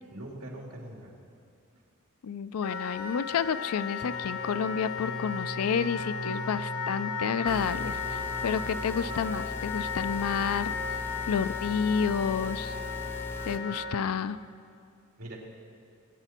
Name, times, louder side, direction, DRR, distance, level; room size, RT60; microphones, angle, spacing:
voice 1, 0.1-1.1 13.3-13.8 15.2-15.4, right 1 dB, 90° right, -1 dB, 2.6 m, -43 dB
voice 2, 2.2-10.7 11.3-12.8 13.5-14.4, left 7 dB, 85° left, 15 dB, 0.4 m, -30 dB
Wind instrument woodwind instrument, 2.6-14.1, left 6 dB, 60° left, 0.9 m, -35 dB
sound 1, 4.0-9.5, right 4 dB, 60° right, 0.6 m, -40 dB
sound 2, 7.5-13.6, left 1 dB, 10° left, 0.6 m, -40 dB
20.5 x 9.0 x 4.3 m, 2.4 s
head